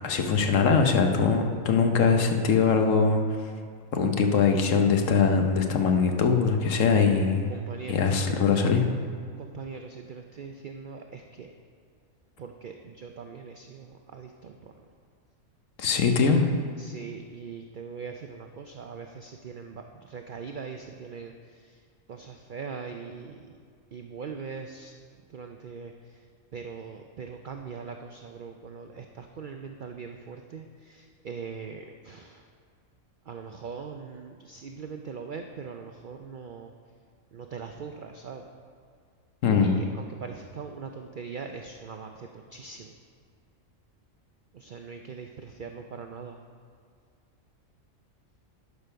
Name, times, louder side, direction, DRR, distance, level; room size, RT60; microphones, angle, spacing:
voice 1, 0.0-3.2 3.9-7.5 7.9-8.9 15.8-16.4 39.4-39.8, left 5 dB, 70° left, 4 dB, 1.2 m, -22 dB
voice 2, 7.5-8.4 9.4-11.5 12.4-14.7 16.1-16.4 16.8-21.8 22.1-23.5 23.9-24.9 25.3-25.9 26.5-32.4 33.3-36.7 37.3-38.5 39.6-42.9 44.5-46.4, right 5 dB, 75° right, 4 dB, 0.4 m, -41 dB
11.0 x 5.2 x 5.7 m, 2.1 s
omnidirectional pair, 1.4 m